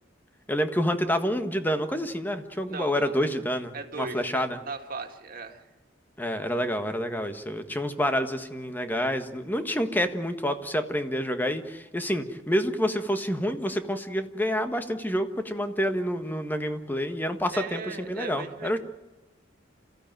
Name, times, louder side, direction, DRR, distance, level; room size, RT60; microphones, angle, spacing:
voice 1, 0.5-4.6 6.2-18.8, equal, 10° left, 8 dB, 1.5 m, -28 dB
voice 2, 2.7-3.4 3.7-5.7 17.5-18.8, right 4 dB, 50° right, 4 dB, 2.4 m, -38 dB
28.0 x 15.0 x 9.2 m, 1.1 s
head